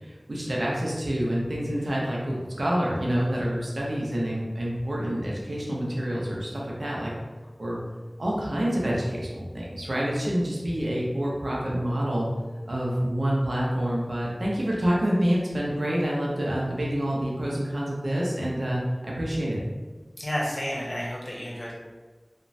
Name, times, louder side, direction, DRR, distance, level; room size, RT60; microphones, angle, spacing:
voice 1, 0.0-7.1 7.6-7.8 8.2-12.3 12.7-19.6, equal, 85° right, -4 dB, 0.6 m, -27 dB
voice 2, 20.2-21.7, equal, 55° left, -5 dB, 0.8 m, -31 dB
3.0 x 2.2 x 2.6 m, 1.3 s
wide cardioid pair, 45°, 0 cm